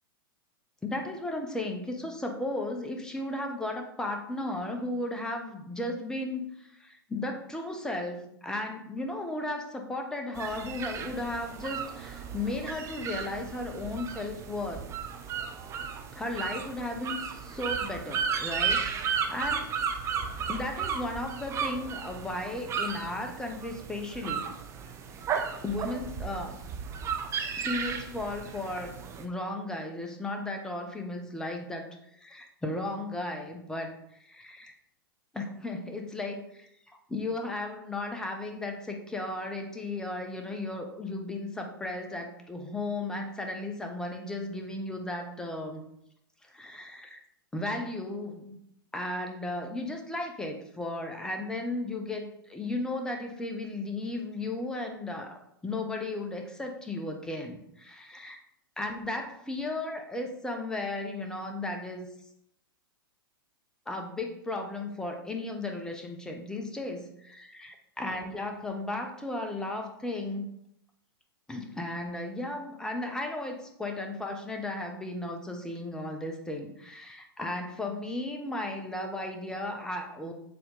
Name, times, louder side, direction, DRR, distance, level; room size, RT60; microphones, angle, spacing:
voice 1, 0.8-14.8 16.1-19.7 20.5-24.5 25.6-26.6 27.6-34.7 35.3-36.7 37.1-45.8 46.4-47.2 47.5-48.6 48.9-58.4 58.8-62.1 63.9-70.5 71.5-80.3, left 2 dB, 5° left, 3 dB, 0.9 m, -35 dB
sound 1, 10.3-29.2, right 6 dB, 25° right, 0.7 m, -34 dB
6.9 x 3.8 x 3.9 m, 0.76 s
figure-of-eight pair, 95°, 12 cm